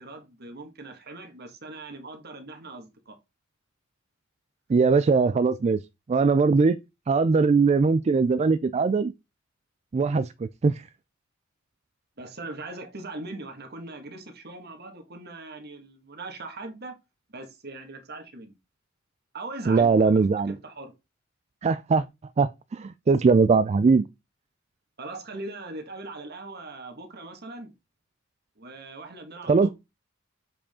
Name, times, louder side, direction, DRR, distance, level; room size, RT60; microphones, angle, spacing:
voice 1, 0.0-3.1 12.2-17.0 17.3-18.6 19.3-19.9 20.5-20.9 25.0-27.7 28.6-29.7, right 2 dB, 55° right, 1.7 m, -40 dB
voice 2, 4.7-5.8 6.1-6.8 7.1-9.1 9.9-10.9 19.7-20.6 21.6-22.0 22.4-24.1 29.5-29.7, right 4 dB, 35° right, 0.3 m, -21 dB
7.1 x 4.9 x 3.7 m
head